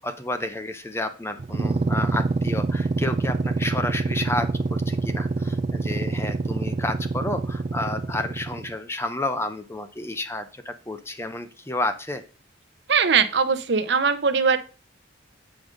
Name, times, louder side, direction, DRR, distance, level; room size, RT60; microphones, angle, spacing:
voice 1, 0.0-12.2, left 2 dB, 15° left, 9 dB, 0.6 m, -31 dB
sound 1, 1.4-8.8, right 3 dB, 35° right, 0.3 m, -26 dB
voice 2, 12.9-14.6, right 5 dB, 60° right, 9 dB, 0.7 m, -20 dB
7.9 x 5.3 x 5.0 m, 0.35 s
head